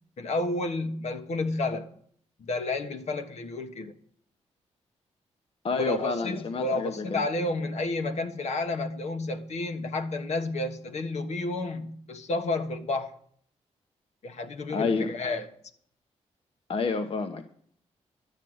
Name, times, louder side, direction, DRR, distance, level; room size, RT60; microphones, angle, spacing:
voice 1, 0.2-1.9 2.4-3.9 5.8-13.1 14.2-15.5, left 2 dB, 70° left, 1.3 m, -31 dB
voice 2, 5.6-7.2 14.7-15.1 16.7-17.4, left 4 dB, 50° left, 1.0 m, -29 dB
11.5 x 7.5 x 7.9 m
cardioid pair, 90°, 12 cm